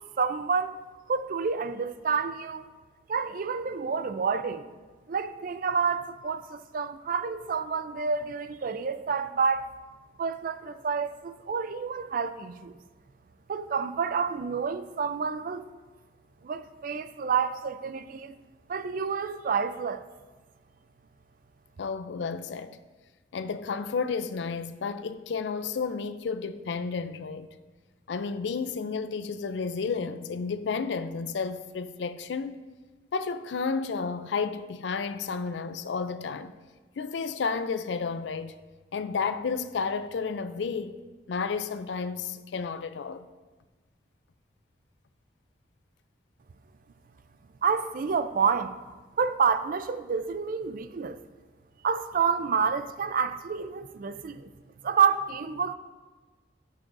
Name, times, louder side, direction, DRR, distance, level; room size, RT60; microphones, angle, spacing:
voice 1, 0.2-0.7 1.1-2.6 3.1-4.7 5.1-9.7 10.2-12.7 13.5-15.6 16.4-18.3 18.7-20.0 47.6-48.8 49.2-51.2 51.8-54.5 54.8-55.7, right 6 dB, 50° right, 0.4 m, -28 dB
voice 2, 21.8-22.8 23.3-27.5 28.1-32.6 33.1-36.5 37.0-38.5 38.9-41.0 41.3-43.3, left 5 dB, 75° left, 0.4 m, -32 dB
13.0 x 6.2 x 2.6 m
head